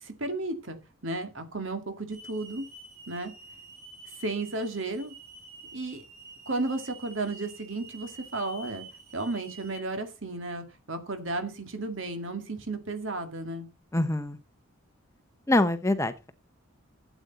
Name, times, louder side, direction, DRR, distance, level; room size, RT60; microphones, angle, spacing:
voice 1, 0.0-0.8 1.0-2.7 3.1-3.3 4.2-5.2 5.7-6.0 6.5-8.9 9.1-13.7, right 2 dB, 60° right, 7 dB, 2.1 m, -33 dB
Hiss / Alarm, 2.1-9.8, right 2 dB, 45° right, 4.2 m, -48 dB
voice 2, 13.9-14.4 15.5-16.3, left 2 dB, 15° left, 10 dB, 0.7 m, -25 dB
13.0 x 8.2 x 4.0 m, 0.28 s
head